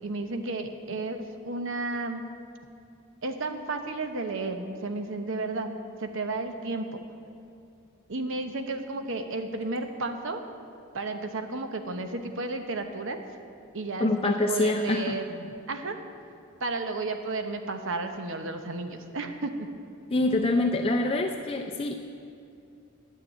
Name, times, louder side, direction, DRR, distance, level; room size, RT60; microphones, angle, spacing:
voice 1, 0.0-2.2 3.2-5.7 6.0-7.0 8.1-10.4 10.9-13.2 13.7-16.0 16.6-19.7, right 3 dB, 65° right, 6 dB, 0.9 m, -33 dB
voice 2, 14.0-15.2 20.1-21.9, left 2 dB, 25° left, 2 dB, 0.5 m, -25 dB
11.0 x 6.6 x 8.8 m, 2.6 s
head